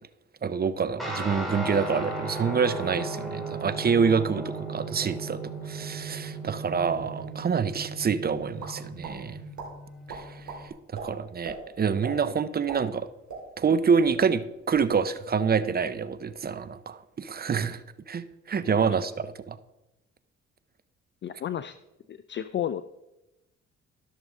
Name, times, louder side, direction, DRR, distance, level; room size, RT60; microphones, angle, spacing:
voice 1, 0.4-5.4 5.7-9.4 10.1-10.7 11.0-13.1 13.6-17.8 18.1-19.6, right 6 dB, 30° right, 14 dB, 0.6 m, -27 dB
Guitar, 1.0-10.7, right 2 dB, ahead, 3.4 m, -36 dB
sound 1, 8.6-9.2 9.6-9.7 10.1-10.6 10.9-11.1 11.4-11.6 12.0-12.2 12.5-13.7 14.0-14.1 14.5-14.9, right 5 dB, 70° right, 3.4 m, -38 dB
voice 2, 21.2-21.8 22.1-22.8, left 10 dB, 40° left, 11 dB, 0.4 m, -32 dB
14.5 x 6.5 x 3.7 m, 0.95 s
cardioid pair, 90°, 30 cm